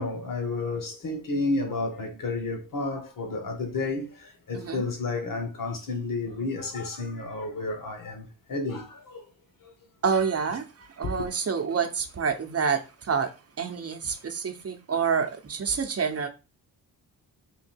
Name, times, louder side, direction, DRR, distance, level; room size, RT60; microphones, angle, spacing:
voice 1, 0.0-9.3 9.6-9.7 11.0-11.3, left 3 dB, 50° left, 1.5 m, -31 dB
voice 2, 4.5-4.8 10.0-13.3 13.6-16.3, right 6 dB, 35° right, 1.0 m, -28 dB
3.9 x 2.8 x 4.4 m
supercardioid pair, 60°, 43 cm